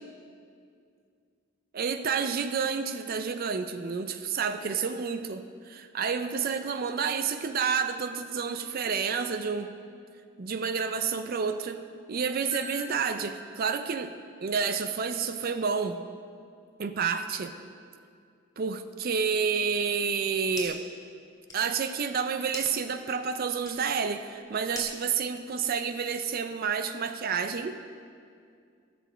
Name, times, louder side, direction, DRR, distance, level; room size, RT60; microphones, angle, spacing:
voice 1, 1.7-9.7 10.4-11.8 12.1-14.1 14.4-16.0 16.8-17.5 18.6-20.8 21.5-27.8, right 6 dB, 45° right, 9 dB, 0.4 m, -29 dB
Marimba xylophone, 12.5-14.6, left 1 dB, 25° right, 2.4 m, -45 dB
sound 1, 20.1-20.9 21.2-26.1, left 2 dB, 15° left, 2.3 m, -45 dB
13.5 x 6.6 x 4.9 m, 2.3 s
head